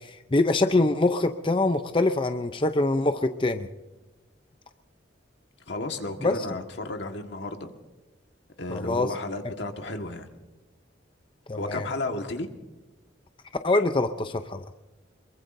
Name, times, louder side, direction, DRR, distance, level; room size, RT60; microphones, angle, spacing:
voice 1, 0.0-3.7 6.2-6.3 8.7-9.1 11.5-11.9 13.6-14.6, left 2 dB, 30° left, 8 dB, 0.6 m, -24 dB
voice 2, 5.7-7.7 8.6-10.3 11.5-12.5, left 2 dB, 75° left, 5 dB, 1.6 m, -33 dB
24.0 x 22.5 x 2.6 m, 1.1 s
head